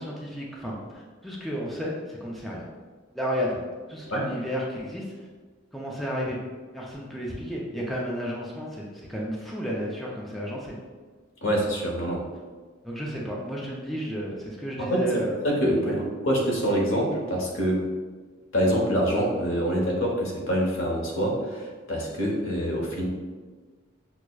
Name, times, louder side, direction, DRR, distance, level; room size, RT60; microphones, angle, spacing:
voice 1, 0.0-2.7 3.1-3.6 3.9-5.1 5.7-6.4 6.7-10.8 12.8-15.3 15.9-16.0, equal, ahead, -4 dB, 0.4 m, -32 dB
voice 2, 11.4-12.2 14.8-15.1 15.4-17.8 18.5-23.1, equal, 80° left, -2 dB, 0.9 m, -25 dB
5.9 x 2.1 x 2.2 m, 1.4 s
head